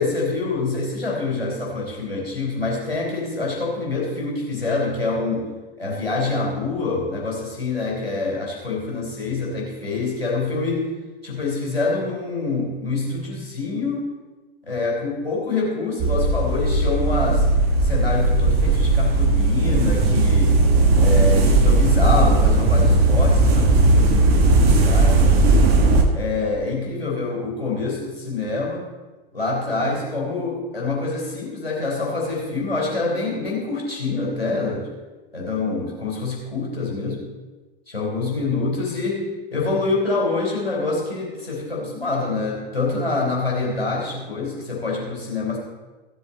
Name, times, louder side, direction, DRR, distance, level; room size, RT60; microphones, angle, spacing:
voice 1, 0.0-5.5 5.8-10.9 11.2-14.1 14.7-17.5 17.8-20.6 20.9-25.7 26.1-28.9 29.3-34.9 35.3-37.2 37.9-39.2 39.5-45.6, left 3 dB, 85° left, -3 dB, 3.7 m, -26 dB
sound 1, 16.0-26.0, right 2 dB, 35° right, 1.5 m, -17 dB
15.5 x 7.5 x 4.1 m, 1.2 s
figure-of-eight pair, 95°, 29 cm